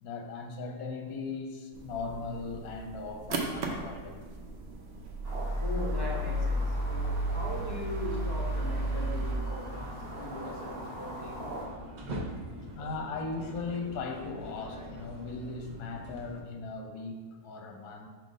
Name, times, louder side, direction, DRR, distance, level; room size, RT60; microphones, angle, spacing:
voice 1, 0.0-4.5 12.7-18.1, left 4 dB, 70° left, 3 dB, 1.2 m, -38 dB
sound 1, 1.7-9.4, equal, 55° right, 0.8 m, -33 dB
sound 2, 5.2-11.6, right 1 dB, 40° right, 1.8 m, -44 dB
voice 2, 5.6-11.4, right 1 dB, 20° left, -4 dB, 0.8 m, -39 dB
sound 3, 8.5-16.4, equal, 75° right, 0.4 m, -43 dB
5.1 x 3.8 x 5.1 m, 1.4 s
omnidirectional pair, 1.6 m